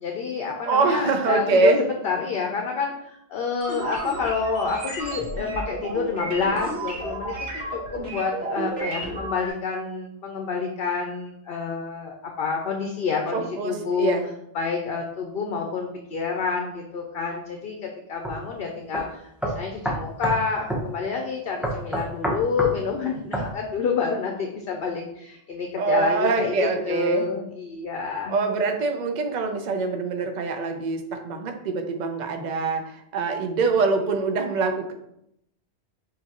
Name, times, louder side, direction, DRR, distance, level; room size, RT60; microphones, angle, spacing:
voice 1, 0.0-14.2 14.5-17.8 18.1-28.4, left 5 dB, 65° left, 2 dB, 0.8 m, -28 dB
voice 2, 0.7-1.8 13.3-14.3 25.7-27.3 28.3-34.9, right 4 dB, 50° right, 5 dB, 0.7 m, -24 dB
sound 1, 3.6-9.5, right 2 dB, 75° right, 1.3 m, -32 dB
sound 2, 18.2-18.4 18.9-19.0 19.4-20.4 20.7-20.9 21.6-22.8 23.3-23.5, right 1 dB, ahead, 0.5 m, -27 dB
6.6 x 2.6 x 2.9 m, 0.77 s
omnidirectional pair, 1.1 m